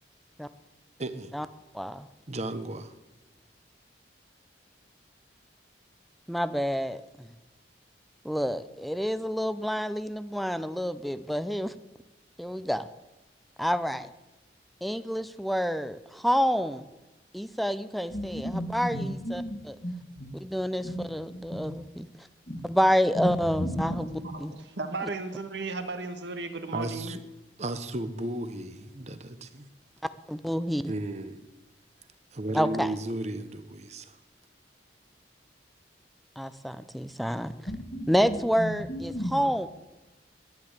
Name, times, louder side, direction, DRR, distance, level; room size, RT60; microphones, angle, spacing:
voice 1, 1.0-1.3 2.3-2.9 26.7-27.2 27.6-29.7 30.9-31.4 32.3-34.2, right 1 dB, 40° right, 11 dB, 1.0 m, -34 dB
voice 2, 1.7-2.1 6.3-7.3 8.2-11.7 12.4-12.9 13.6-14.1 14.8-16.9 17.3-19.8 20.3-22.1 22.6-24.5 25.0-25.1 30.3-30.9 32.5-32.9 36.4-37.5 38.1-39.7, equal, ahead, 13 dB, 0.5 m, -28 dB
voice 3, 18.1-20.3 20.8-21.1 21.5-21.8 22.5-22.6 23.2-23.3 23.6-24.3 37.7-39.4, equal, 40° left, -3 dB, 1.7 m, -34 dB
voice 4, 24.3-27.1, right 3 dB, 80° right, 8 dB, 1.5 m, -35 dB
11.0 x 10.5 x 8.2 m, 1.1 s
head